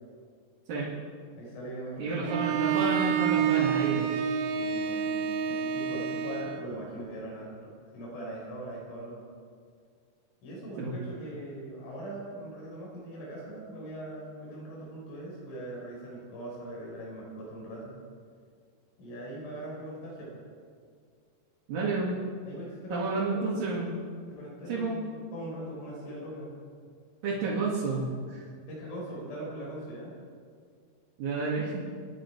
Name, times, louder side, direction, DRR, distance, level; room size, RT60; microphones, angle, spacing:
voice 1, 1.4-2.4 4.5-9.2 10.4-18.0 19.0-20.4 22.5-23.4 24.3-26.5 28.7-30.1, right 1 dB, 85° left, -4 dB, 7.5 m, -41 dB
voice 2, 2.0-4.2 10.8-10.9 21.7-22.2 22.9-23.9 24.7-25.0 27.2-28.4 31.2-31.9, right 3 dB, 55° right, -7 dB, 3.6 m, -30 dB
Bowed string instrument, 2.2-6.7, right 8 dB, 80° right, 2.3 m, -28 dB
28.5 x 10.0 x 4.7 m, 2.1 s
omnidirectional pair, 5.5 m